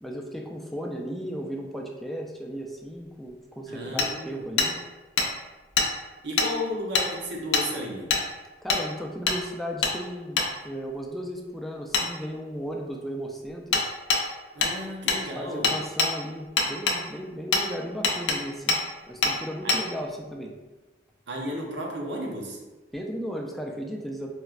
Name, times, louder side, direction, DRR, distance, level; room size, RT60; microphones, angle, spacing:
voice 1, 0.0-4.8 8.6-13.8 15.0-20.5 22.9-24.3, equal, ahead, 0 dB, 0.3 m, -35 dB
voice 2, 3.7-4.4 6.2-8.2 14.5-15.8 19.6-19.8 21.3-22.6, equal, 75° right, -1 dB, 0.7 m, -33 dB
Hammer, 4.0-4.1 4.6-4.7 5.2-5.3 5.8-5.9 6.4-6.5 6.9-7.1 7.5-7.7 8.1-8.2 8.7-8.8 9.3-9.4 9.8-9.9 10.4-10.5 11.9-12.1 13.7-13.8 14.1-14.2 14.6-14.7 15.1-15.2 15.6-16.1 16.6-17.0 17.5-17.6 18.0-18.4 18.7-18.8 19.2-19.3 19.7-19.8, left 4 dB, 80° left, 0.5 m, -23 dB
4.2 x 2.1 x 2.3 m, 1.2 s
head